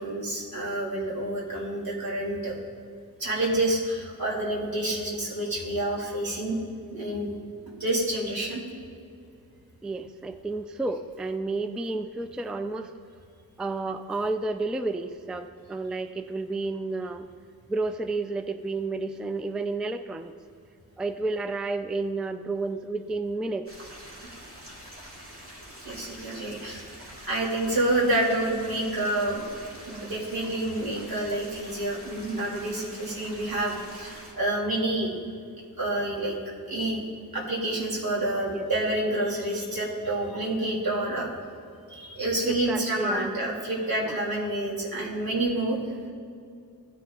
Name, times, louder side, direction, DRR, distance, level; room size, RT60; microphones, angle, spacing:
voice 1, 0.0-2.5 3.2-6.6 6.9-7.3 7.8-8.6 24.2-24.3 25.8-29.4 29.9-35.1 35.8-36.4 36.7-37.0 37.3-41.3 41.9-45.8, right 1 dB, 80° right, -4 dB, 2.6 m, -28 dB
voice 2, 9.8-12.9 13.6-17.3 17.7-20.3 21.0-23.7 38.5-38.6 42.4-43.4 44.0-44.2, right 3 dB, ahead, 9 dB, 0.3 m, -31 dB
sound 1, 23.7-34.3, equal, 40° right, 2.3 m, -45 dB
15.5 x 10.0 x 2.4 m, 2.4 s
wide cardioid pair, 95°, 35 cm